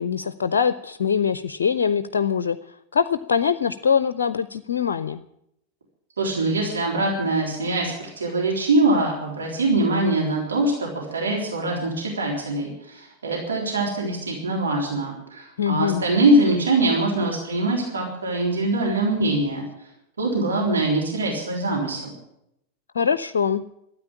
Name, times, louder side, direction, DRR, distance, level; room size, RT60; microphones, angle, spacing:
voice 1, 0.0-2.6 2.9-5.2 15.6-16.0 22.9-23.6, left 7 dB, 65° left, 14 dB, 0.5 m, -23 dB
voice 2, 6.2-19.6 20.2-22.1, right 2 dB, 70° right, -2 dB, 3.7 m, -23 dB
13.0 x 9.2 x 10.0 m, 0.79 s
figure-of-eight pair, 90°, 0 cm